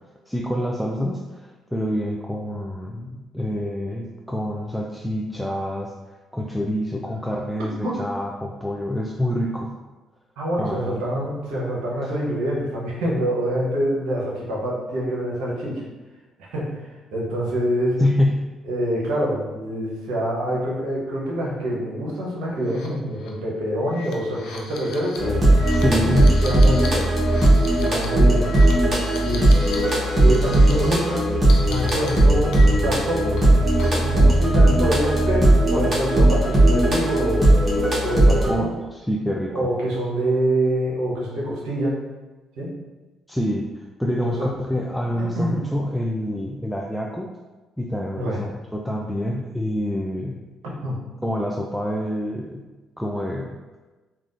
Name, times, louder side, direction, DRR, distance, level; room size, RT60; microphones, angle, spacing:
voice 1, 0.3-5.9 6.3-9.7 10.6-11.0 18.0-18.5 25.7-26.4 38.5-39.7 43.3-43.7 44.0-47.3 47.8-50.4 51.2-52.6 53.0-53.6, left 1 dB, ahead, -1 dB, 0.3 m, -26 dB
voice 2, 10.4-15.8 16.4-16.7 17.1-18.0 18.6-25.3 25.8-27.1 27.8-28.5 29.2-29.5 30.2-31.3 31.6-33.4 34.0-37.5 38.0-38.7 39.5-42.0 42.6-42.7 44.2-44.5 45.2-45.6 48.2-48.5 50.6-51.0, right 1 dB, 75° right, -4 dB, 0.9 m, -26 dB
sound 1, 22.6-22.9 23.2-23.3 23.8-29.9 30.2-30.9 31.5-33.0 33.4-34.1, left 4 dB, 75° left, 0.4 m, -38 dB
sound 2, 25.2-38.5, right 1 dB, 35° right, 1.1 m, -17 dB
3.4 x 2.3 x 2.5 m, 1.2 s
hypercardioid pair, 55°, 0 cm